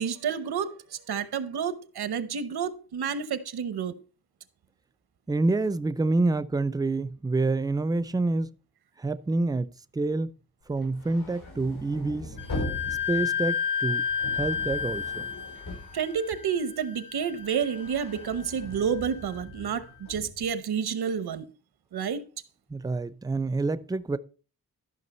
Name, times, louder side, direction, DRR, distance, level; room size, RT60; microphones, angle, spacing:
voice 1, 0.0-4.0 15.9-21.5 21.9-22.2, right 7 dB, 90° right, 0.9 m, -30 dB
voice 2, 5.3-8.5 9.0-10.3 10.7-12.4 13.1-14.1 14.3-15.0 22.7-24.2, right 2 dB, 10° right, 0.4 m, -27 dB
sound 1, 10.7-16.8 17.2-20.5, left 1 dB, 90° left, 6.3 m, -40 dB
Wind instrument woodwind instrument, 12.4-19.8, left 7 dB, 60° left, 1.6 m, -33 dB
12.5 x 5.9 x 4.2 m
wide cardioid pair, 130°, 37 cm